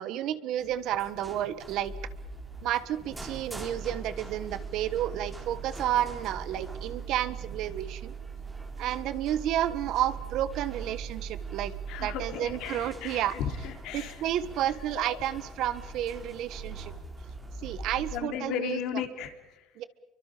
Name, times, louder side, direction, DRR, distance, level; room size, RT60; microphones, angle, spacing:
voice 1, 0.0-1.9 2.6-8.1 8.8-11.7 12.0-13.3 13.9-16.9 17.6-18.8 19.8-19.9, right 12 dB, 60° right, 14 dB, 1.4 m, -31 dB
sound 1, 0.6-18.2, right 1 dB, 10° right, 2.9 m, -44 dB
sound 2, 3.2-12.3, right 8 dB, 85° right, 4.5 m, -41 dB
voice 2, 11.9-14.2 14.9-15.2 17.7-17.8 18.1-19.7, left 8 dB, 65° left, 5 dB, 3.4 m, -35 dB
29.5 x 24.0 x 5.1 m, 1.0 s
cardioid pair, 140°, 0 cm